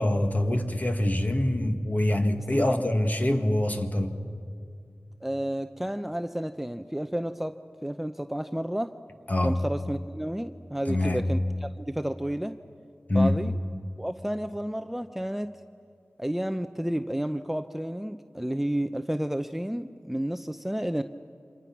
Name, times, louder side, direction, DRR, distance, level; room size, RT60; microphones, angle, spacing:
voice 1, 0.0-4.1 9.3-9.6 10.9-11.2 13.1-13.4, left 1 dB, 35° left, 5 dB, 1.9 m, -25 dB
voice 2, 5.2-7.6 7.8-9.0 9.4-12.6 13.1-13.5 14.0-15.5 16.2-21.0, right 1 dB, 5° right, 9 dB, 0.6 m, -31 dB
28.5 x 26.0 x 6.0 m, 2.3 s
wide cardioid pair, 75°, 5 cm